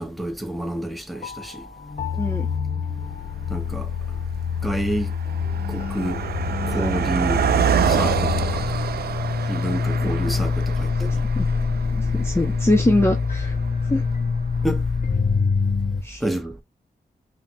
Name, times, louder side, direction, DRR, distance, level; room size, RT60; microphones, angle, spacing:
voice 1, 0.0-1.6 3.5-3.9 4.6-5.1 5.7-6.2 6.7-7.4 7.9-8.7 9.5-11.2 14.6-14.8 16.2-16.6, right 1 dB, ahead, 1.2 m, -28 dB
sound 1, 1.1-16.0, left 5 dB, 60° left, 0.7 m, -25 dB
voice 2, 2.1-2.5 10.0-10.1 11.0-11.1 11.4-11.5 11.9-13.6 13.9-14.0 16.0-16.2, left 1 dB, 15° left, 0.9 m, -23 dB
Car passing by, 2.6-2.7 3.5-3.7 4.0-14.4, right 8 dB, 90° right, 0.5 m, -27 dB
5.6 x 2.9 x 2.2 m
cardioid pair, 65°, 16 cm